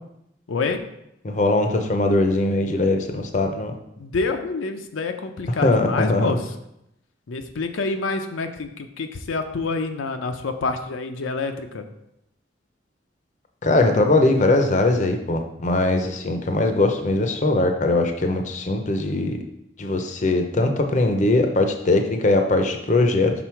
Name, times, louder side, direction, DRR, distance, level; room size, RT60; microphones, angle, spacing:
voice 1, 0.5-0.8 4.0-6.5 7.3-11.9, left 3 dB, 90° left, 6 dB, 0.5 m, -27 dB
voice 2, 1.2-3.7 5.6-6.3 13.6-19.4 19.8-23.3, left 2 dB, 40° left, 5 dB, 0.5 m, -20 dB
6.0 x 3.8 x 4.5 m, 0.82 s
head